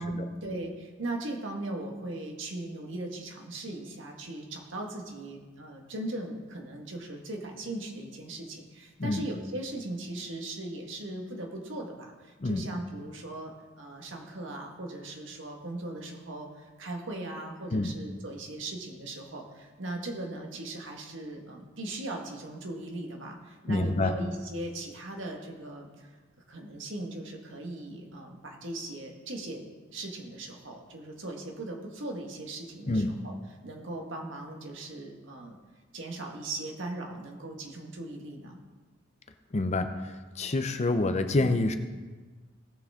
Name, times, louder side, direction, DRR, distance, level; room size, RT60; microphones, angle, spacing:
voice 1, 0.0-26.2 26.5-29.6 29.9-33.4 33.6-35.6 35.9-38.6, right 2 dB, 65° right, 1 dB, 1.7 m, -39 dB
voice 2, 23.7-24.2 32.9-33.1 39.5-39.9 40.4-41.8, left 2 dB, 35° left, 8 dB, 0.6 m, -27 dB
18.0 x 6.8 x 3.7 m, 1.3 s
head